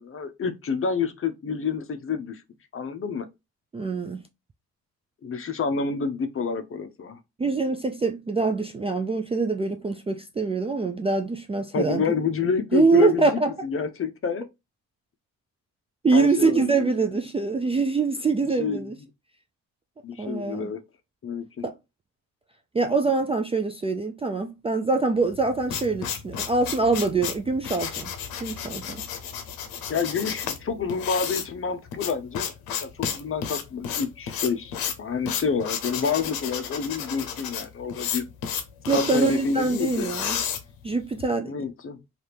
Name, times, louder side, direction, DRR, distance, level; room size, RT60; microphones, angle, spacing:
voice 1, 0.0-2.4 2.7-3.3 5.2-7.2 11.7-14.4 16.1-16.9 18.4-18.9 20.0-20.8 21.2-21.7 29.9-32.5 32.8-38.3 38.9-40.1 41.4-42.0, left 5 dB, 40° left, 0.6 m, -28 dB
voice 2, 3.7-4.2 7.4-12.1 12.7-13.5 16.0-19.0 20.2-20.7 21.6-21.8 22.7-28.1 28.4-29.0 38.9-40.4 40.8-41.5, right 3 dB, 20° right, 0.3 m, -24 dB
sound 1, 25.3-41.2, left 8 dB, 80° left, 0.7 m, -32 dB
2.7 x 2.5 x 3.3 m
supercardioid pair, 65°, 35 cm